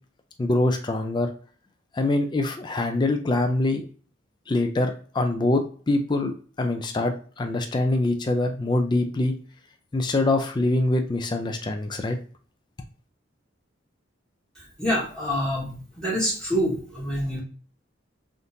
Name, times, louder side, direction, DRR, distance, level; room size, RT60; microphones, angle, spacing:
voice 1, 0.4-1.3 1.9-3.9 4.5-9.4 9.9-12.2, left 2 dB, 20° left, 5 dB, 0.3 m, -24 dB
voice 2, 14.6-17.4, equal, 5° left, -8 dB, 1.0 m, -27 dB
3.5 x 2.5 x 2.7 m, 0.41 s
head